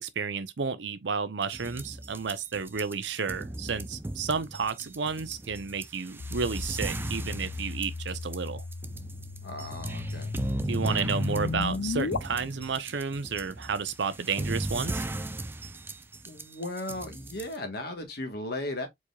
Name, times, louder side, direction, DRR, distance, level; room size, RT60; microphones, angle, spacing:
voice 1, 0.0-8.6 10.7-15.0, right 5 dB, 70° right, 0.6 m, -31 dB
sound 1, 1.4-17.6, right 1 dB, 10° right, 0.4 m, -36 dB
sound 2, 6.2-12.2, left 4 dB, 80° left, 0.5 m, -36 dB
voice 2, 9.4-10.3 16.3-18.9, left 1 dB, 60° left, 1.4 m, -36 dB
4.7 x 4.1 x 2.3 m
head